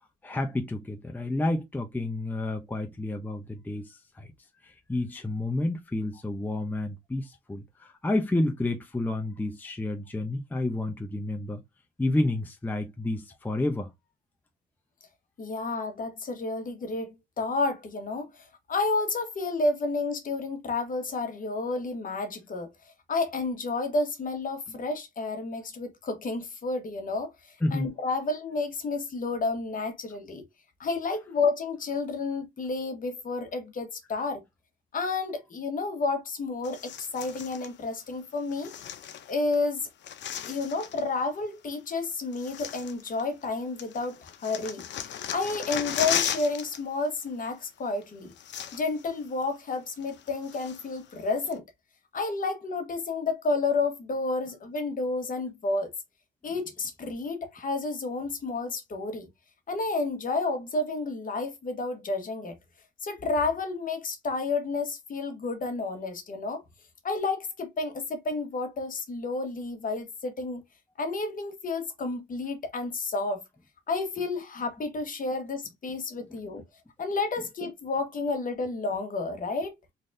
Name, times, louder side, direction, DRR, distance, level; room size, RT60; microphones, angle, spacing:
voice 1, 0.2-4.3 4.6-11.6 12.0-13.9 27.6-27.9, left 2 dB, 10° left, 0.6 m, -30 dB
voice 2, 15.4-22.7 23.1-27.3 27.7-30.4 30.8-34.4 34.9-38.7 39.3-39.9 40.4-48.3 48.7-51.6 52.1-55.9 56.4-59.3 59.7-62.6 63.0-66.6 67.0-70.6 71.0-73.4 73.9-76.6 77.0-79.7, left 3 dB, 45° left, 1.2 m, -31 dB
sound 1, 36.6-37.7 38.5-39.6 39.8-41.1 41.9-42.0 42.3-43.5 43.8-46.8 47.1-47.3 48.0-48.1 48.3-49.1 49.4-49.5 50.0-51.0 51.5-51.6, left 9 dB, 65° left, 0.6 m, -35 dB
4.0 x 3.2 x 2.6 m
cardioid pair, 90°, 20 cm